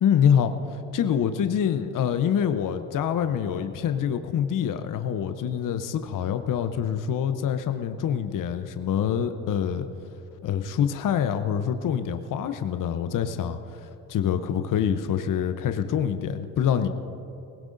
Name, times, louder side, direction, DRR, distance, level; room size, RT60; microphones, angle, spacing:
voice 1, 0.0-9.9 10.4-16.9, left 8 dB, 50° left, 9 dB, 0.8 m, -25 dB
19.5 x 17.5 x 2.6 m, 2.9 s
hypercardioid pair, 60°, 43 cm